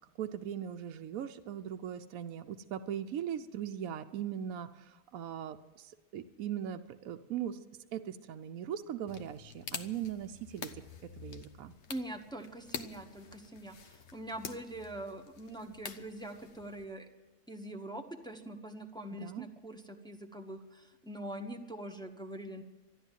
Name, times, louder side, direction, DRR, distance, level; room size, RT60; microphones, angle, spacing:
voice 1, 0.2-7.6 7.9-10.8 11.2-11.7 19.2-19.5, right 9 dB, 70° right, 6 dB, 1.0 m, -39 dB
sound 1, 9.1-16.8, left 6 dB, 50° left, 1.1 m, -47 dB
voice 2, 11.9-17.1 17.5-22.6, right 1 dB, 5° left, 4 dB, 0.9 m, -43 dB
13.0 x 11.5 x 9.1 m, 1.1 s
omnidirectional pair, 1.7 m